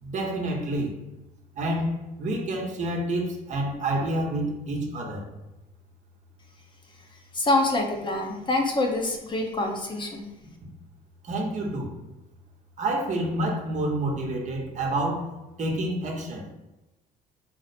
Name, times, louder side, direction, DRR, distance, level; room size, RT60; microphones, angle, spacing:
voice 1, 0.0-1.0 1.6-5.3 11.2-11.9 12.8-15.3 15.6-16.5, right 1 dB, 45° right, 1 dB, 0.9 m, -28 dB
voice 2, 7.3-10.3, left 2 dB, 30° left, 2 dB, 0.7 m, -26 dB
4.3 x 2.1 x 4.2 m, 1.0 s
cardioid pair, 110°, 17 cm